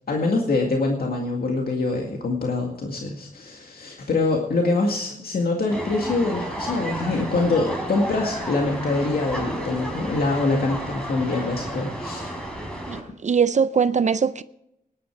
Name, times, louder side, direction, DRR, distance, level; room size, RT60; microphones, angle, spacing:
voice 1, 0.1-12.3, left 3 dB, 85° left, 2.1 m, -24 dB
sound 1, 5.7-13.0, right 1 dB, 5° left, 4.3 m, -32 dB
voice 2, 12.9-14.4, right 6 dB, 50° right, 0.5 m, -21 dB
18.0 x 11.0 x 4.7 m
wide cardioid pair, 110°, 15 cm